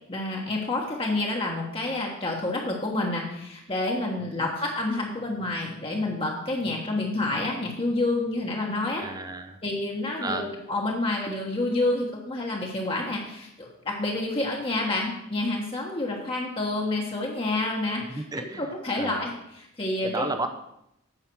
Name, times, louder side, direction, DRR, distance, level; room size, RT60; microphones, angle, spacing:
voice 1, 0.1-9.1 9.6-20.3, left 2 dB, 25° left, -1 dB, 1.3 m, -29 dB
voice 2, 9.0-9.6 10.2-10.6 18.1-19.3 20.0-20.5, right 2 dB, 15° right, 8 dB, 0.7 m, -33 dB
9.0 x 5.9 x 6.2 m, 0.80 s
head